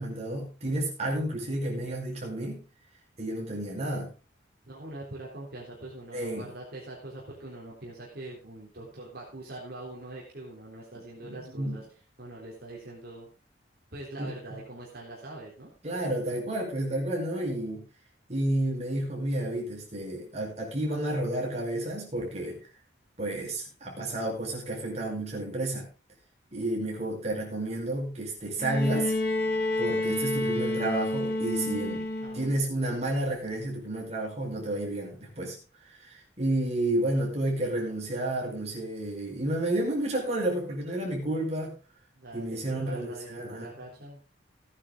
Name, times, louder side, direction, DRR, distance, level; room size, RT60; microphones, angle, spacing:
voice 1, 0.0-2.6 3.2-4.1 6.1-6.5 11.2-11.8 14.2-14.3 15.8-17.9 18.3-22.6 23.2-25.9 26.5-29.2 29.8-32.0 32.3-35.6 36.0-41.7 42.3-43.7, right 1 dB, 35° right, -1 dB, 5.0 m, -31 dB
voice 2, 4.6-11.8 12.2-13.3 13.9-15.7 32.2-32.5 42.1-44.3, right 2 dB, 55° right, -4 dB, 3.6 m, -43 dB
Bowed string instrument, 28.6-32.6 33.9-34.0, left 1 dB, 55° left, 1.3 m, -29 dB
15.5 x 9.7 x 3.8 m, 0.32 s
head